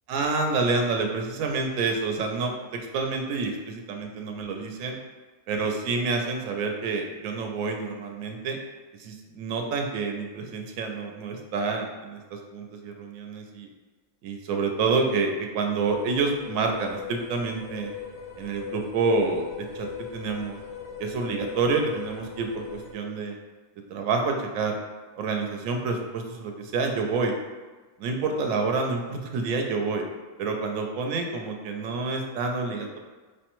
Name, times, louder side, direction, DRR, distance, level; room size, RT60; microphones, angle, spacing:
voice 1, 0.1-5.0 5.5-8.6 9.0-12.2 12.5-13.7 14.2-17.9 18.4-20.6 21.0-23.4 23.9-24.8 25.2-27.3 28.0-30.0 30.4-33.0, right 4 dB, 70° right, 3 dB, 0.9 m, -28 dB
sound 1, 15.9-22.9, left 6 dB, 65° left, 0.7 m, -39 dB
4.9 x 2.1 x 2.9 m, 1.3 s
omnidirectional pair, 1.5 m